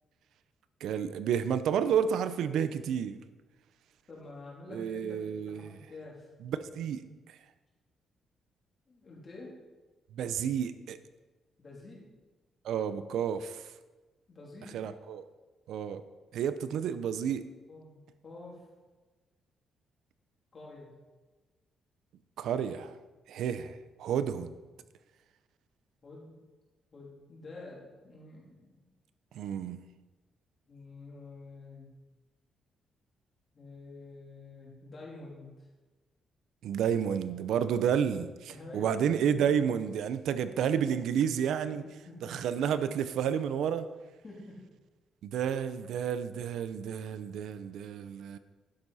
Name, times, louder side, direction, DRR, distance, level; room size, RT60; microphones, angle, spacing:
voice 1, 0.8-3.2 4.7-5.7 6.4-7.0 10.1-11.0 12.6-13.6 14.7-15.2 15.7-16.0 16.3-17.4 22.4-22.9 23.3-24.5 29.3-29.8 36.6-41.8 42.2-43.9 45.2-48.4, right 8 dB, 80° right, 12 dB, 0.6 m, -30 dB
voice 2, 4.1-6.3 8.9-9.6 11.6-12.0 14.3-14.8 17.7-18.7 20.5-20.9 26.0-26.3 26.9-28.9 30.6-31.9 33.5-35.7 38.5-39.4 41.7-42.3 44.2-44.6, left 2 dB, 30° left, -4 dB, 3.1 m, -48 dB
11.5 x 10.5 x 4.2 m, 1.2 s
cardioid pair, 170°, 0 cm